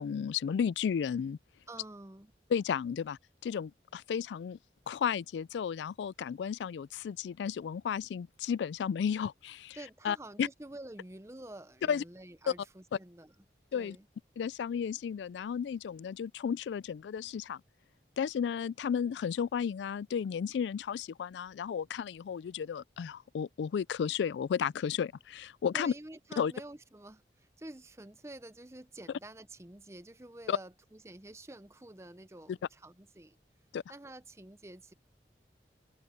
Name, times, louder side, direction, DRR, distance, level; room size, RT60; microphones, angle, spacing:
voice 1, 0.0-1.4 2.5-4.6 4.9-9.8 10.0-10.5 11.9-12.0 13.7-14.0 14.4-17.6 18.2-25.9 26.4-26.5 30.5-30.6 32.5-32.6 33.7-33.8, left 7 dB, 90° left, 0.3 m, -33 dB
voice 2, 1.7-2.3 9.7-13.3 13.7-14.1 25.7-33.4 33.9-34.9, right 1 dB, 15° right, 0.7 m, -49 dB
head